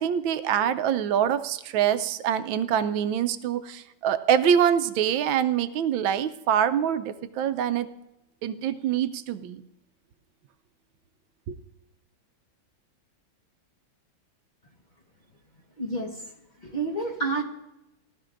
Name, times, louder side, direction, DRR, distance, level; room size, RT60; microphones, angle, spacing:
voice 1, 0.0-7.9 8.4-9.6 11.5-11.6, right 9 dB, 85° right, 12 dB, 1.4 m, -25 dB
voice 2, 15.8-16.2 16.6-17.4, right 3 dB, 30° left, 0 dB, 1.1 m, -29 dB
18.5 x 12.5 x 2.5 m, 0.92 s
omnidirectional pair, 2.1 m